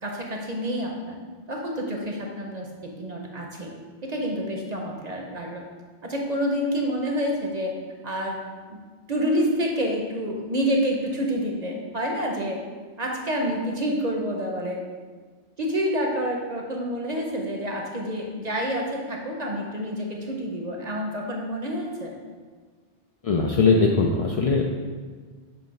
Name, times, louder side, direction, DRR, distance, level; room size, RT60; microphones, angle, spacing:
voice 1, 0.0-1.2 1.5-3.7 4.0-5.6 6.0-7.7 8.0-8.4 8.7-8.8 9.1-12.6 13.0-14.8 15.6-22.2, equal, 45° right, 0 dB, 0.8 m, -28 dB
voice 2, 23.2-24.7, left 4 dB, 55° left, 0 dB, 0.4 m, -20 dB
7.0 x 3.2 x 5.2 m, 1.5 s
omnidirectional pair, 1.1 m